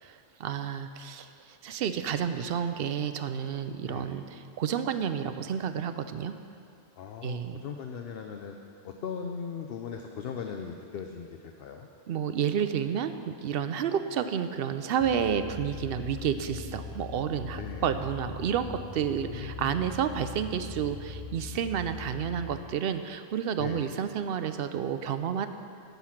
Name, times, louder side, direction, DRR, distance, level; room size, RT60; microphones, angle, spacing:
voice 1, 0.0-6.4 7.2-7.6 12.1-25.5, right 8 dB, 60° right, 10 dB, 0.7 m, -30 dB
voice 2, 7.0-8.6 8.8-11.9 17.5-17.8 19.3-19.8 23.6-23.8, left 6 dB, 60° left, 4 dB, 0.8 m, -38 dB
sound 1, 15.0-22.6, left 4 dB, 30° left, 1.1 m, -41 dB
10.5 x 8.2 x 5.8 m, 2.4 s
omnidirectional pair, 1.2 m